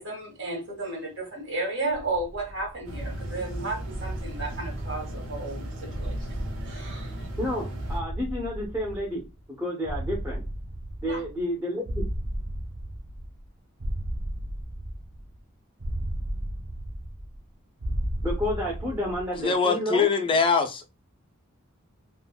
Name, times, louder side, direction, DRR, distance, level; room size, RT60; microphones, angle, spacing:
voice 1, 0.0-7.3 11.1-11.2, right 2 dB, 60° right, 1.6 m, -34 dB
sound 1, 1.9-3.3 3.9-5.4 5.9-7.5 7.8-9.4 9.8-11.5 11.8-13.5 13.8-15.4 15.8-17.5 17.8-19.4, right 1 dB, 40° right, 0.5 m, -34 dB
sound 2, 2.8-8.0, right 1 dB, 85° right, 0.8 m, -35 dB
voice 2, 7.4-9.2 9.6-10.4 11.0-12.1 18.2-20.1, equal, 10° right, 0.8 m, -30 dB
voice 3, 19.4-20.9, left 5 dB, 25° left, 0.4 m, -23 dB
3.6 x 2.2 x 2.2 m
head